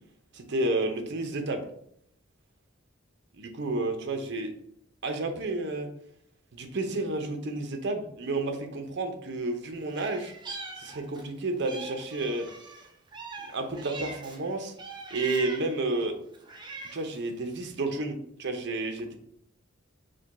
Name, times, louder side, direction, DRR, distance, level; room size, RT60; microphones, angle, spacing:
voice 1, 0.3-1.6 3.4-4.5 5.0-5.9 6.5-10.3 10.8-12.4 13.5-14.7 15.1-16.2 16.9-19.2, right 2 dB, 60° right, 5 dB, 0.7 m, -31 dB
Meow, 9.9-11.3 11.7-14.4 14.8-15.8 16.3-17.2, right 3 dB, 25° right, 0.6 m, -41 dB
5.0 x 2.2 x 4.1 m, 0.68 s
head